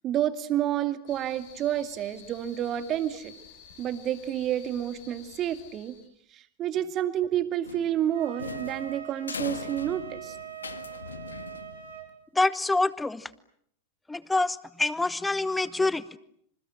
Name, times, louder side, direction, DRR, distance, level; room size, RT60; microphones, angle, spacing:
voice 1, 0.0-3.3 3.8-6.0 6.3-10.4, right 11 dB, 30° right, 11 dB, 2.2 m, -29 dB
sound 1, 1.1-6.1, left 7 dB, 45° left, 5.8 m, -51 dB
sound 2, 7.6-12.1, left 5 dB, 75° left, 1.8 m, -40 dB
Wind instrument woodwind instrument, 8.1-12.1, right 10 dB, 70° right, 7.2 m, -42 dB
voice 2, 12.3-13.3 14.1-16.2, left 2 dB, 10° left, 18 dB, 1.1 m, -26 dB
28.0 x 27.0 x 7.7 m, 0.70 s
figure-of-eight pair, 90°, 0 cm